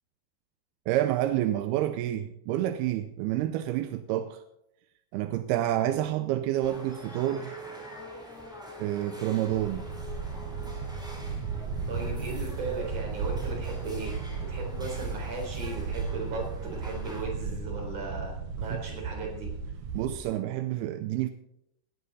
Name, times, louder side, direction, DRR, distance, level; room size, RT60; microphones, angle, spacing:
voice 1, 0.9-4.4 5.1-7.6 8.8-9.8 18.7-18.8 19.9-21.3, right 13 dB, 85° right, 2.6 m, -28 dB
sound 1, 6.6-17.2, equal, ahead, 2.3 m, -45 dB
sound 2, 9.5-20.2, right 5 dB, 65° right, 1.9 m, -35 dB
voice 2, 11.9-19.5, right 3 dB, 40° right, 4.9 m, -37 dB
17.5 x 11.0 x 4.1 m
omnidirectional pair, 4.5 m